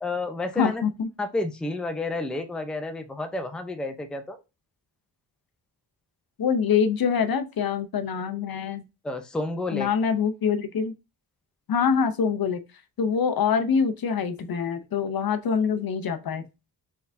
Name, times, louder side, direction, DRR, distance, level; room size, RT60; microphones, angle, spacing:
voice 1, 0.0-0.8 1.2-4.4 9.0-9.9, left 2 dB, ahead, 0.5 m, -30 dB
voice 2, 0.6-1.1 6.4-8.8 9.7-10.9 11.7-12.6 13.0-16.4, left 6 dB, 55° left, 0.7 m, -25 dB
4.4 x 3.5 x 2.6 m
wide cardioid pair, 115°, 44 cm